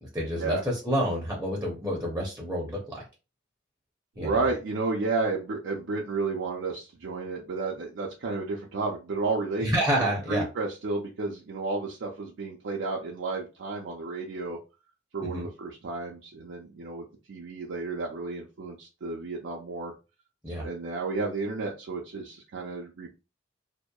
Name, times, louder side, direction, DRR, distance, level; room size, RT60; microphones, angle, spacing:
voice 1, 0.0-3.0 4.2-4.4 9.6-10.4 15.2-15.5 20.4-20.7, equal, 10° right, -2 dB, 0.6 m, -28 dB
voice 2, 4.2-9.7 10.3-14.6 15.1-19.9 20.5-23.1, right 3 dB, 70° right, -2 dB, 0.5 m, -32 dB
2.7 x 2.0 x 2.3 m, 0.30 s
head